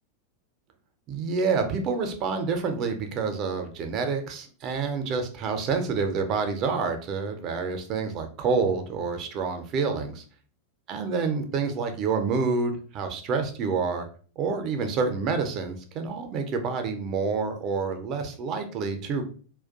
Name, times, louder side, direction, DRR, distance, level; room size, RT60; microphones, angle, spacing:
voice 1, 1.1-10.2 10.9-14.1 14.4-19.2, right 5 dB, 35° right, 6 dB, 0.5 m, -28 dB
2.3 x 2.1 x 2.6 m, 0.41 s
figure-of-eight pair, 90°, 0 cm